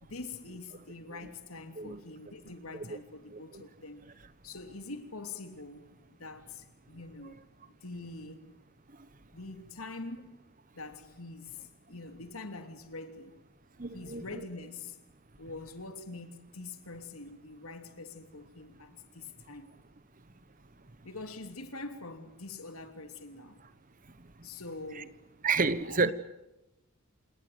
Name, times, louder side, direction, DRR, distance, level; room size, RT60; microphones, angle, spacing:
voice 1, 0.0-4.0 4.4-5.9 6.2-7.5 7.8-8.5 9.3-10.4 10.7-13.4 13.9-15.0 15.4-19.8 21.0-23.6 24.4-25.2 25.8-26.1, left 3 dB, 90° left, 3.1 m, -44 dB
voice 2, 3.3-3.6 7.2-7.3 9.0-9.1 13.8-14.2 24.2-24.5 25.0-25.1 25.4-26.1, right 4 dB, 40° right, 1.1 m, -31 dB
28.0 x 19.0 x 9.4 m
head